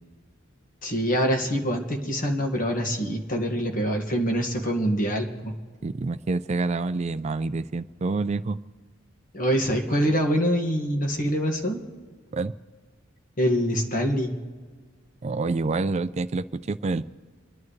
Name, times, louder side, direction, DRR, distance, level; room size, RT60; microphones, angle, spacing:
voice 1, 0.8-5.6 9.3-11.8 13.4-14.3, equal, 45° left, 2 dB, 1.7 m, -25 dB
voice 2, 5.8-8.6 12.3-12.5 15.2-17.0, right 3 dB, 35° right, 11 dB, 0.4 m, -27 dB
30.0 x 11.0 x 3.2 m, 1.5 s
head